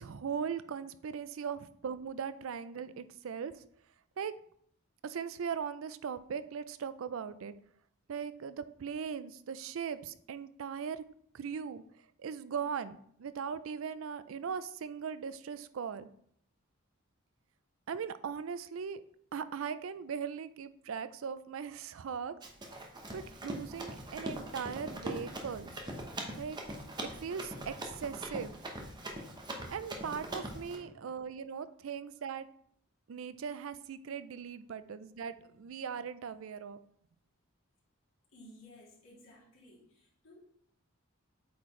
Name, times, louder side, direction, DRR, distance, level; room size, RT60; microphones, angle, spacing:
voice 1, 0.0-3.5 4.2-4.3 5.0-7.5 8.1-11.0 11.3-11.8 12.2-16.1 17.9-19.0 19.3-22.4 23.1-25.7 26.4-26.6 27.2-28.6 29.7-32.5 33.1-36.8, right 6 dB, 75° right, 14 dB, 0.4 m, -39 dB
Run, 22.4-30.8, right 1 dB, 20° right, 0.9 m, -42 dB
voice 2, 30.7-31.1 38.3-40.4, left 1 dB, 90° left, -6 dB, 2.8 m, -56 dB
8.4 x 4.2 x 3.1 m, 0.66 s
head